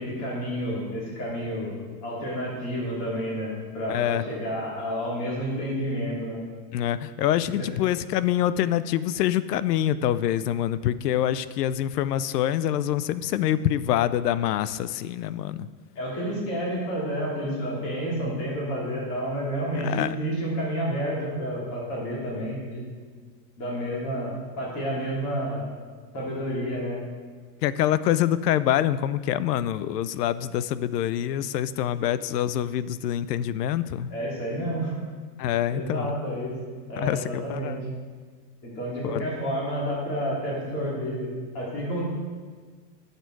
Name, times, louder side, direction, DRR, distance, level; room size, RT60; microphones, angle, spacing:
voice 1, 0.0-1.8 2.0-6.4 7.6-7.7 15.9-22.8 23.6-25.6 26.1-27.0 34.1-34.9 35.7-36.5 36.9-37.8 38.6-42.0, equal, 30° left, -4 dB, 3.0 m, -30 dB
voice 2, 3.9-4.2 6.7-15.7 19.8-20.2 27.6-34.1 35.4-36.2 37.0-37.8 39.0-39.2, left 11 dB, 70° left, 16 dB, 0.6 m, -25 dB
9.5 x 6.7 x 4.6 m, 1.5 s
supercardioid pair, 155°, 50 cm